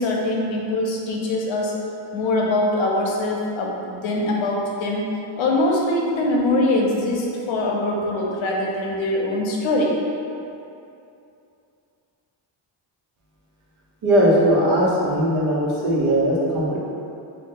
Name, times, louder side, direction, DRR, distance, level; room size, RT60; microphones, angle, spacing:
voice 1, 0.0-1.7 2.1-5.0 5.4-9.9, left 1 dB, 70° left, -2 dB, 0.7 m, -23 dB
voice 2, 14.0-16.8, equal, 80° right, -5 dB, 0.9 m, -19 dB
2.7 x 2.3 x 3.7 m, 2.7 s
cardioid pair, 105°, 48 cm